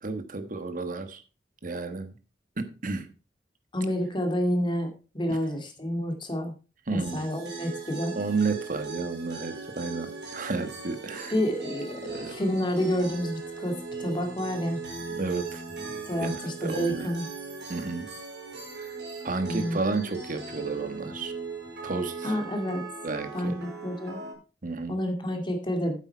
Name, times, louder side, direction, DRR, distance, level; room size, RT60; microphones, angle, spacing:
voice 1, 0.0-1.2 1.6-2.1 2.6-3.1 5.3-5.4 6.9-7.3 8.1-11.3 12.0-12.3 15.1-15.8 16.2-17.1 17.7-18.1 18.8-19.0 19.2-21.3 21.8-22.4 23.0-23.5 24.6-25.0, right 3 dB, 50° right, 9 dB, 1.4 m, -32 dB
voice 2, 3.7-4.9 5.1-6.5 6.9-8.2 11.3-14.8 16.1-17.3 19.5-19.8 22.2-22.8 23.3-24.2 24.9-26.0, equal, 30° left, 4 dB, 2.2 m, -29 dB
sound 1, 7.0-24.3, right 4 dB, 80° right, 4.3 m, -39 dB
9.0 x 8.0 x 4.5 m, 0.34 s
head